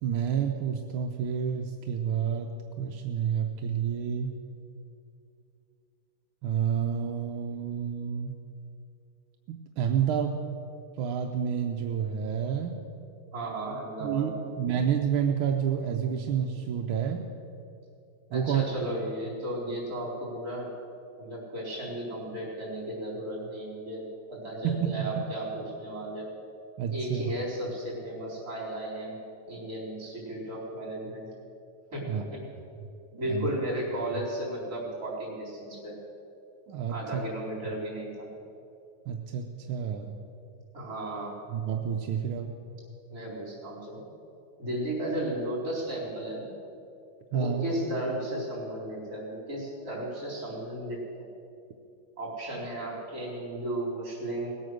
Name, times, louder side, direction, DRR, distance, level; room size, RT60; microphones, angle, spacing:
voice 1, 0.0-2.5 2.8-4.4 6.4-8.4 9.5-10.4 11.0-12.8 14.0-14.3 14.6-17.3 18.3-18.6 24.6-25.1 26.8-27.2 32.1-32.2 33.3-33.5 36.7-37.2 39.1-40.1 41.5-42.6 47.3-47.6, right 8 dB, 85° right, 3 dB, 1.6 m, -29 dB
voice 2, 13.3-14.5 18.3-20.7 21.2-26.3 26.9-29.2 29.5-31.3 31.9-32.4 33.2-36.0 36.9-38.3 40.7-41.3 43.1-44.0 44.6-46.5 47.3-51.0 52.2-54.5, right 1 dB, 45° right, -5 dB, 4.7 m, -34 dB
19.0 x 8.4 x 6.6 m, 2.7 s
omnidirectional pair, 2.3 m